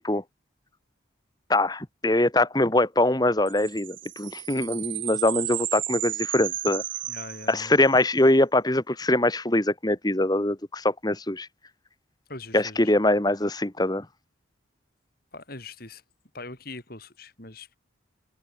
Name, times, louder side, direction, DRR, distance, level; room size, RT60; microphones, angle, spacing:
voice 1, 1.5-6.8 7.5-11.5 12.5-14.0, left 1 dB, 20° left, 1.6 m, -23 dB
sound 1, 3.5-8.1, right 13 dB, 75° right, 5.7 m, -33 dB
voice 2, 7.1-7.7 12.3-12.9 15.3-16.0 16.3-17.8, left 3 dB, 50° left, 4.0 m, -41 dB
head